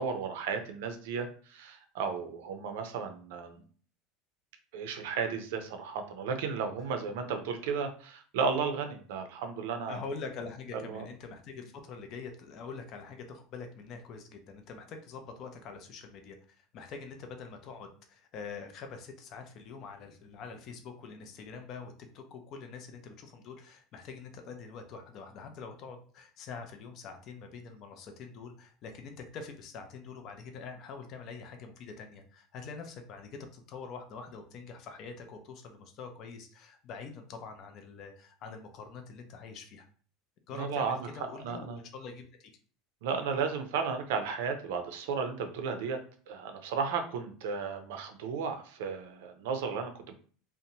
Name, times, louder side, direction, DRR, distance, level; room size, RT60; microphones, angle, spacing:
voice 1, 0.0-3.6 4.7-10.0 10.9-11.1 40.6-41.1 41.4-41.8 43.0-46.0 46.3-50.1, right 5 dB, 75° right, 6 dB, 0.5 m, -34 dB
voice 2, 9.9-39.9 40.5-42.5, left 5 dB, 35° left, 6 dB, 0.4 m, -45 dB
2.6 x 2.1 x 2.8 m, 0.43 s
cardioid pair, 175°, 0 cm